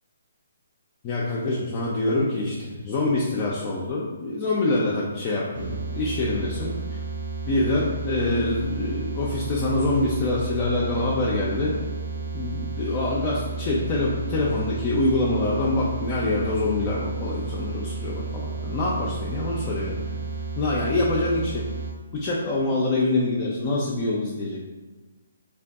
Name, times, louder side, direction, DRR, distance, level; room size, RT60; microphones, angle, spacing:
voice 1, 1.0-7.0 7.5-11.8 12.3-20.2 20.6-21.6 22.1-24.6, left 2 dB, 30° left, -5 dB, 0.3 m, -25 dB
sound 1, 5.5-21.9, right 4 dB, 80° right, 0.7 m, -32 dB
2.5 x 2.2 x 2.3 m, 1.3 s
figure-of-eight pair, 140°, 0 cm